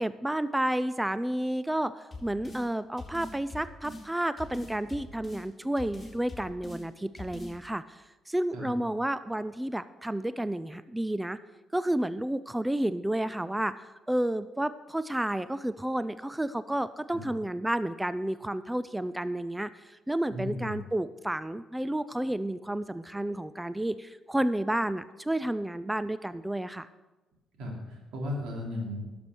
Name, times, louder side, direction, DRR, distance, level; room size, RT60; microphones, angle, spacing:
voice 1, 0.0-11.4 11.7-13.7 14.1-26.9, right 1 dB, 10° right, 14 dB, 0.4 m, -31 dB
sound 1, 2.1-2.6 3.0-4.0 4.4-5.4 5.8-6.8 7.2-7.5, left 2 dB, 20° left, 3.1 m, -42 dB
voice 2, 20.3-20.8 27.6-29.0, left 1 dB, 85° right, -1 dB, 3.1 m, -35 dB
11.5 x 6.9 x 6.2 m, 1.1 s
cardioid pair, 90°, 0 cm